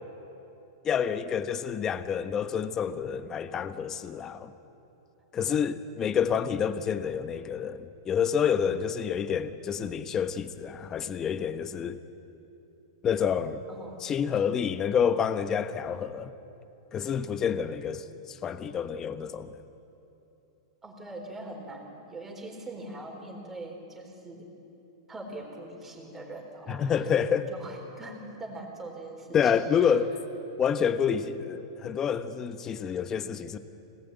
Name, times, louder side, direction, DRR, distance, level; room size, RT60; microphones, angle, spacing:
voice 1, 0.8-4.5 5.3-12.0 13.0-13.7 14.0-16.3 16.9-19.6 26.7-27.5 29.3-30.1 30.6-33.6, left 7 dB, 20° left, 11 dB, 0.9 m, -28 dB
voice 2, 13.7-14.1 17.0-17.2 20.8-24.5 25.1-27.1 27.5-29.9, right 2 dB, 10° right, -1 dB, 4.2 m, -42 dB
25.5 x 18.5 x 9.3 m, 2.9 s
supercardioid pair, 160°, 3 cm